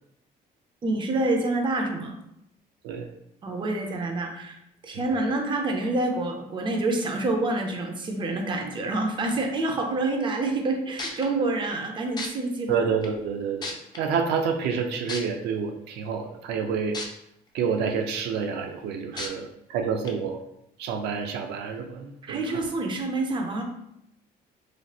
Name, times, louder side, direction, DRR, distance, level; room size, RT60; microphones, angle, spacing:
voice 1, 0.8-2.2 3.4-12.9 19.1-19.3 22.2-23.6, right 2 dB, 30° right, 3 dB, 0.5 m, -27 dB
sound 1, 10.6-10.7 11.0-11.3 12.2-12.3 13.0-13.1 13.6-14.0 15.1-15.2 16.9-17.0 17.6-17.7 19.2-19.3 20.0-20.1, left 3 dB, 25° left, 0.5 m, -32 dB
voice 2, 12.7-13.7 14.0-17.0 17.5-20.4 20.8-22.4, right 6 dB, 80° right, 5 dB, 0.4 m, -28 dB
3.2 x 2.6 x 2.3 m, 0.77 s
cardioid pair, 110°, 17 cm